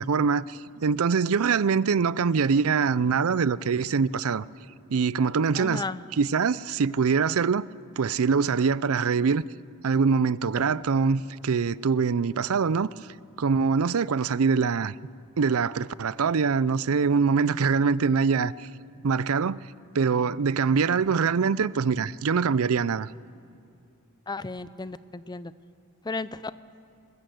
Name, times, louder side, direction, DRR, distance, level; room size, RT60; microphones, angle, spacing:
voice 1, 0.0-4.5 4.9-5.8 6.2-7.7 8.0-9.5 9.8-12.9 13.4-14.9 15.4-18.7 19.0-19.6 19.9-23.1, right 5 dB, 75° right, 0.5 m, -24 dB
voice 2, 5.5-6.0 24.3-25.5 26.0-26.5, left 3 dB, 20° left, 0.5 m, -34 dB
sound 1, 10.6-18.6, equal, 5° right, 1.4 m, -55 dB
22.0 x 20.0 x 7.9 m
head